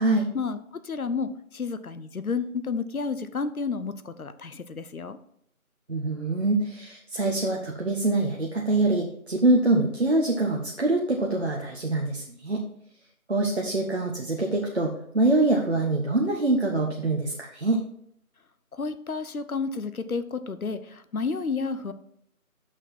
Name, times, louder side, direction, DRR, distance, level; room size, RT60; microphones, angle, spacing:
voice 1, 0.3-5.2 18.7-21.9, left 4 dB, 75° left, 11 dB, 0.8 m, -31 dB
voice 2, 5.9-12.6 13.3-17.8, right 2 dB, 50° right, 0 dB, 0.8 m, -24 dB
6.5 x 6.0 x 4.2 m, 0.71 s
figure-of-eight pair, 160°, 43 cm